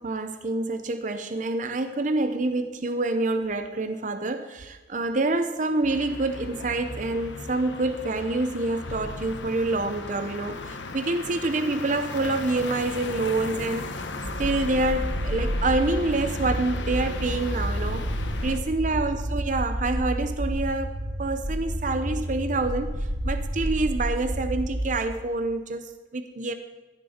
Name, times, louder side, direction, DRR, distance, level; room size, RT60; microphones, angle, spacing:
voice 1, 0.0-14.1 14.4-18.1 18.4-26.5, right 2 dB, 45° right, 9 dB, 0.6 m, -27 dB
sound 1, 5.8-18.6, left 3 dB, 80° left, 1.1 m, -37 dB
sound 2, 14.2-24.9, equal, 85° right, 2.0 m, -30 dB
16.0 x 9.7 x 4.3 m, 1.2 s
head